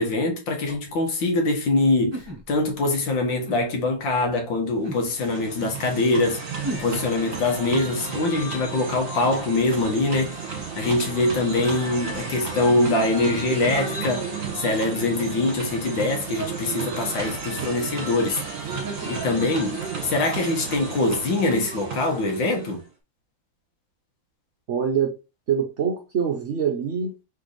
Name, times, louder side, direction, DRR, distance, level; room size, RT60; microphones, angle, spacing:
voice 1, 0.0-6.4 6.7-14.3 14.5-18.8 19.1-22.8, left 2 dB, 70° left, 1.8 m, -24 dB
sound 1, 0.7-0.9 2.1-2.8 3.4-3.6 4.8-5.1 6.6-6.9, right 1 dB, 25° right, 0.6 m, -33 dB
sound 2, 4.8-22.9, right 5 dB, 45° right, 1.6 m, -33 dB
voice 2, 24.7-25.1 25.5-27.2, right 7 dB, 65° right, 0.7 m, -24 dB
4.0 x 3.3 x 4.0 m
omnidirectional pair, 2.2 m